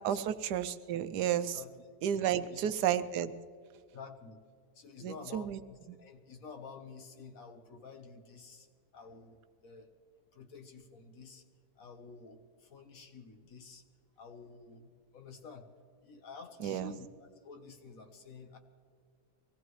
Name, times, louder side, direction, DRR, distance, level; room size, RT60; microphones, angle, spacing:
voice 1, 0.0-1.6 2.0-3.3 5.0-5.6 5.9-6.0 16.6-16.9, right 10 dB, 90° right, 12 dB, 1.2 m, -32 dB
voice 2, 2.3-2.7 3.9-4.4 4.7-8.7 8.9-9.9 10.3-11.4 11.8-13.8 14.2-15.7 16.0-18.6, left 4 dB, 60° left, 5 dB, 1.5 m, -50 dB
23.5 x 17.5 x 3.2 m, 2.1 s
omnidirectional pair, 1.7 m